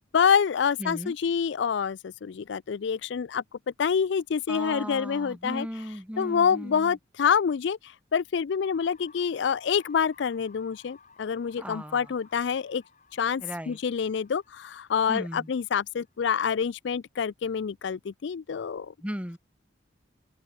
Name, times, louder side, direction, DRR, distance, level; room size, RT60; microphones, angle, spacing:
voice 1, 0.1-3.4 3.8-5.7 6.2-7.8 8.1-12.8 13.1-18.9, left 7 dB, 65° left, 0.4 m, -27 dB
voice 2, 0.8-1.2 4.5-6.9 11.6-12.1 13.4-13.8 15.1-15.5 19.0-19.4, equal, 5° right, 2.1 m, -36 dB
sound 1, 8.6-16.5, left 5 dB, 40° left, 5.2 m, -58 dB
open air
head